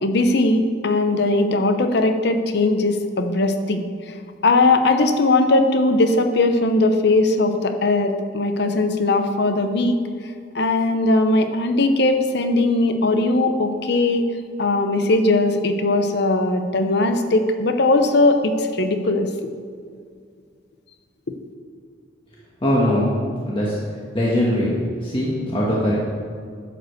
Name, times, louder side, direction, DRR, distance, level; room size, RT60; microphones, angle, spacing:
voice 1, 0.0-3.8 4.4-10.0 10.5-14.3 14.6-19.3, left 2 dB, 60° left, 7 dB, 0.8 m, -19 dB
voice 2, 22.6-23.1 23.4-23.7 24.1-24.7 25.0-26.0, equal, 30° left, -6 dB, 1.4 m, -20 dB
10.5 x 5.1 x 6.5 m, 2.1 s
head